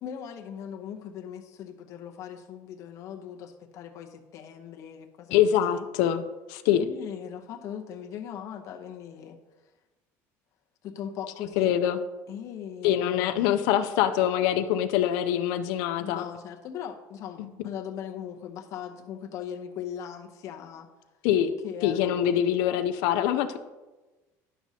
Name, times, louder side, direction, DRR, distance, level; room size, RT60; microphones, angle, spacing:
voice 1, 0.0-5.9 6.7-9.4 10.8-11.7 12.3-13.5 16.0-20.9 21.6-22.4, left 9 dB, 50° left, 4 dB, 0.8 m, -39 dB
voice 2, 5.3-6.2 6.5-6.8 11.6-12.0 12.8-16.2 17.4-17.5 21.2-21.5 21.8-23.6, left 10 dB, 85° left, 9 dB, 0.5 m, -24 dB
11.0 x 6.1 x 2.8 m, 1.1 s
cardioid pair, 155°, 7 cm